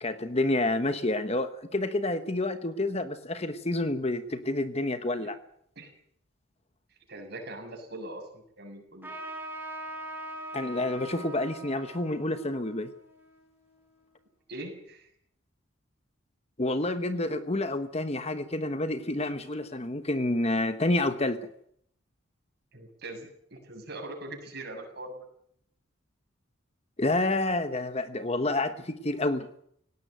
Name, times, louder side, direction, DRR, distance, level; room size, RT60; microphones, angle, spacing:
voice 1, 0.0-5.4 10.5-12.9 16.6-21.5 27.0-29.5, left 2 dB, 30° left, 10 dB, 1.1 m, -29 dB
voice 2, 7.1-9.1 14.5-15.1 17.3-17.4 22.7-25.2, right 1 dB, 50° right, 3 dB, 7.0 m, -42 dB
Trumpet, 9.0-14.0, right 1 dB, 10° right, 6.5 m, -42 dB
18.0 x 18.0 x 9.1 m, 0.71 s
head